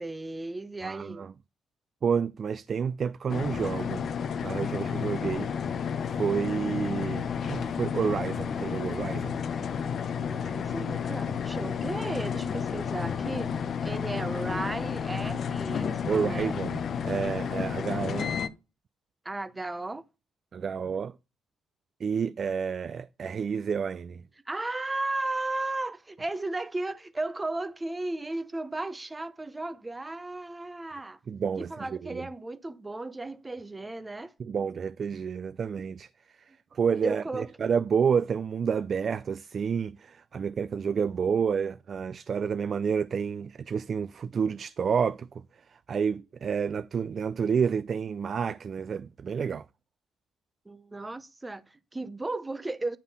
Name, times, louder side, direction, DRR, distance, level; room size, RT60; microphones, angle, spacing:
voice 1, 0.0-1.3 10.2-16.6 17.9-18.2 19.2-20.0 24.5-31.2 31.6-34.3 37.0-37.5 50.7-53.0, right 2 dB, 15° right, 0.7 m, -35 dB
voice 2, 0.8-1.3 2.0-4.1 4.4-5.5 6.1-9.4 16.0-18.4 20.5-21.1 22.0-24.2 31.3-32.3 34.4-36.1 36.7-45.4 45.7-49.7, right 6 dB, 50° right, 0.3 m, -29 dB
sound 1, 3.3-18.5, left 7 dB, 55° left, 0.7 m, -31 dB
9.6 x 3.7 x 5.6 m
cardioid pair, 90°, 0 cm